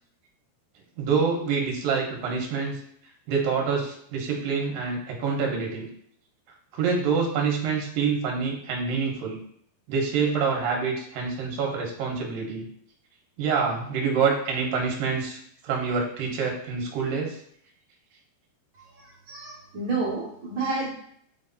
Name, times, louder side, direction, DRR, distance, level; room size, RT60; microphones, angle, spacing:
voice 1, 1.0-2.8 3.3-5.9 6.7-9.4 9.9-12.7 13.4-15.4 15.6-17.4, right 5 dB, 65° right, 0 dB, 2.6 m, -26 dB
voice 2, 18.7-20.9, right 3 dB, 45° right, -5 dB, 1.6 m, -30 dB
8.0 x 3.4 x 4.1 m, 0.66 s
omnidirectional pair, 4.9 m